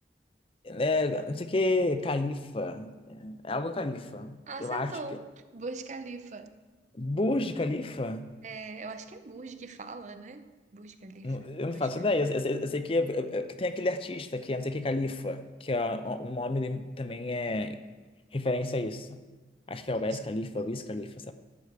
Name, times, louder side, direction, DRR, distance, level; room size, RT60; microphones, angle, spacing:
voice 1, 0.6-5.0 6.9-8.3 11.2-17.8 18.3-19.2 19.7-21.3, left 2 dB, 30° left, 10 dB, 0.6 m, -30 dB
voice 2, 4.5-5.3 5.5-6.5 8.4-12.1 20.0-20.2, right 3 dB, 40° right, 10 dB, 0.7 m, -42 dB
12.5 x 5.0 x 8.0 m, 1.3 s
head